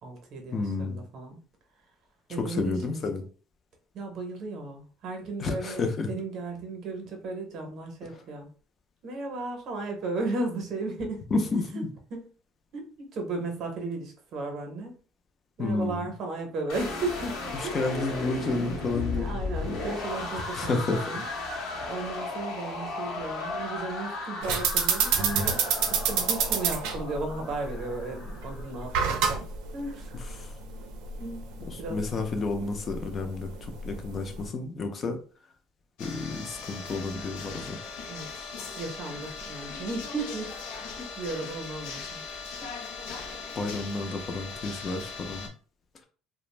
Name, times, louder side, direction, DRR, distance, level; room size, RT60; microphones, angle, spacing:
voice 1, 0.0-1.4 2.3-3.1 3.9-8.5 9.0-11.4 11.7-11.8 12.1-12.3 12.7-14.9 15.6-17.9 18.9-21.3 21.9-25.6 25.9-29.5 29.7-30.2 31.2-32.3 37.1-37.3 38.1-38.3 38.8-40.5 41.0-42.2 42.6-42.8, right 2 dB, 40° right, 4 dB, 0.7 m, -35 dB
voice 2, 0.5-1.0 2.4-3.2 5.4-6.1 11.3-11.9 15.6-16.1 17.7-19.4 20.5-21.0 30.4-30.5 31.9-33.5 33.8-35.2 36.0-37.8 43.6-45.5, left 3 dB, 25° left, 6 dB, 0.4 m, -30 dB
sound 1, 16.7-28.7, left 3 dB, 55° left, 0.8 m, -35 dB
sound 2, 24.4-34.5, right 6 dB, 80° right, 0.5 m, -29 dB
sound 3, 36.0-45.5, left 4 dB, 85° left, 0.5 m, -39 dB
2.4 x 2.0 x 3.1 m, 0.40 s
cardioid pair, 175°, 0 cm